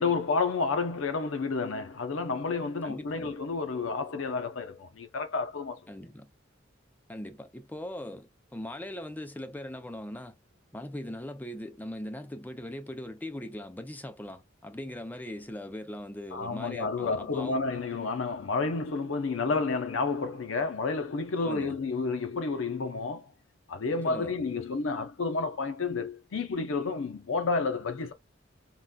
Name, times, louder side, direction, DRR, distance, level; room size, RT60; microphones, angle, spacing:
voice 1, 0.0-5.8 16.3-23.3 23.7-28.1, left 4 dB, 70° left, 0.6 m, -30 dB
voice 2, 2.8-3.3 5.9-6.3 7.1-10.3 10.7-17.6 21.4-21.8 24.1-24.3, left 1 dB, 10° left, 0.4 m, -40 dB
3.8 x 2.2 x 2.2 m
head